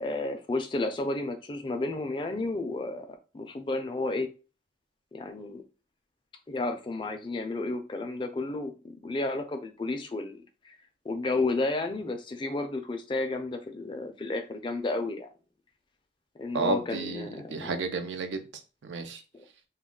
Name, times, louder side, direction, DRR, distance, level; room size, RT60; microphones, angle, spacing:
voice 1, 0.0-4.3 5.1-5.6 6.5-8.7 9.0-10.8 11.0-15.3 16.4-17.7 19.3-19.4, left 2 dB, 25° left, 0.3 m, -32 dB
voice 2, 16.5-18.4 18.8-19.2, right 3 dB, 75° right, 0.5 m, -32 dB
2.2 x 2.2 x 3.6 m
head